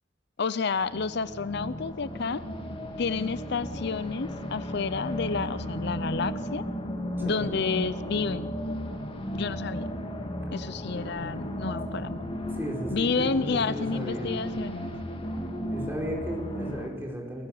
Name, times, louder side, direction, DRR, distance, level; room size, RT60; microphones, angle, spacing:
voice 1, 0.4-2.4 3.0-6.7 7.2-8.6 9.3-9.9 10.5-12.2 12.9-14.9, left 4 dB, 60° left, 16 dB, 0.6 m, -30 dB
sound 1, 0.7-16.9, equal, 30° left, 2.2 m, -35 dB
voice 2, 7.2-7.6 12.6-14.4 15.7-17.5, equal, 10° right, 0 dB, 4.7 m, -35 dB
28.5 x 15.5 x 7.8 m, 1.4 s
head